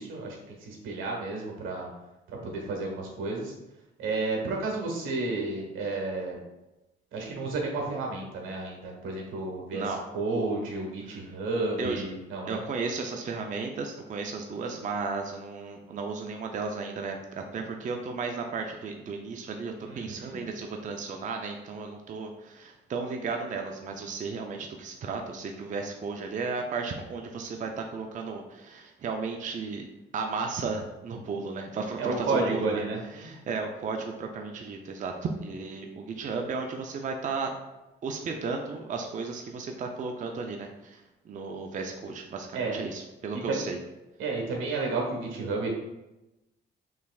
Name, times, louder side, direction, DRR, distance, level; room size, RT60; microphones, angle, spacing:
voice 1, 0.0-1.9 2.4-3.5 4.0-6.4 7.1-9.8 10.1-12.6 19.8-20.4 31.9-33.4 42.5-42.8 43.5-43.6 44.2-45.7, right 3 dB, 85° right, 0 dB, 1.3 m, -31 dB
voice 2, 12.5-29.9 30.1-32.8 33.1-37.5 38.0-43.8, right 4 dB, 40° right, 3 dB, 0.5 m, -34 dB
5.6 x 3.2 x 2.3 m, 0.99 s
cardioid pair, 90°, 20 cm